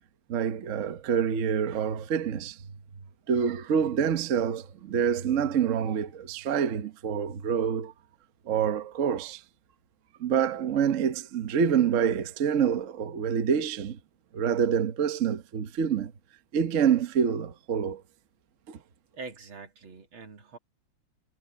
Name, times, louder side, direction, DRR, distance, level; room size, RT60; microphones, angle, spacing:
voice 1, 0.3-2.6 3.3-7.9 8.5-9.4 10.2-14.0 14.3-16.1 16.5-18.0 18.7-18.8, right 7 dB, 50° right, 1.1 m, -26 dB
voice 2, 19.1-20.6, right 4 dB, 80° right, 3.3 m, -43 dB
omnidirectional pair, 2.2 m